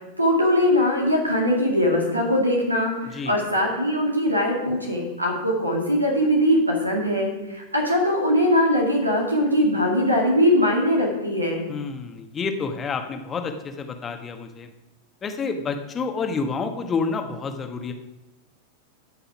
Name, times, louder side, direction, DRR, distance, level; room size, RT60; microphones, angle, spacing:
voice 1, 0.2-11.7, left 1 dB, 85° right, 0 dB, 2.0 m, -21 dB
voice 2, 11.7-14.7 15.2-17.9, left 4 dB, 20° left, 6 dB, 1.3 m, -29 dB
14.5 x 5.7 x 6.0 m, 0.99 s
figure-of-eight pair, 90°, 0 cm